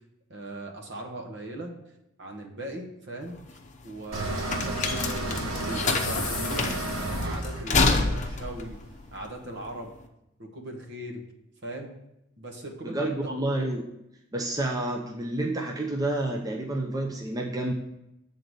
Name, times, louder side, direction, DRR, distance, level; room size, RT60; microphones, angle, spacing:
voice 1, 0.3-1.7 2.2-3.4 3.8-8.8 9.1-9.9 10.4-11.2 11.6-11.9 12.4-13.3, right 1 dB, 60° right, 1 dB, 1.2 m, -39 dB
sound 1, 3.2-10.0, left 3 dB, 35° left, 0.7 m, -28 dB
sound 2, 4.1-9.1, right 1 dB, 85° right, 1.4 m, -32 dB
voice 2, 12.8-13.8 14.3-17.7, right 1 dB, 20° right, 0 dB, 0.6 m, -29 dB
7.7 x 3.9 x 6.4 m, 0.85 s
head